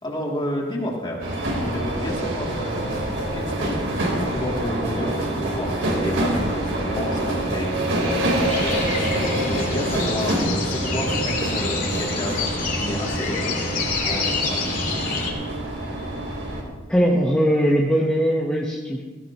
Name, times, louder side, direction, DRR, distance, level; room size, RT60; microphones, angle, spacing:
voice 1, 0.0-1.2 1.5-3.8 4.2-7.7 8.1-9.1 9.4-12.3 12.7-13.6 14.0-14.7, equal, 25° left, -2 dB, 2.9 m, -30 dB
sound 1, 1.2-16.6, right 1 dB, 85° right, 3.8 m, -26 dB
sound 2, 8.5-15.3, left 3 dB, 45° left, 2.5 m, -27 dB
voice 2, 16.9-19.0, equal, 5° left, -3 dB, 1.1 m, -20 dB
17.0 x 17.0 x 3.0 m, 1.4 s
head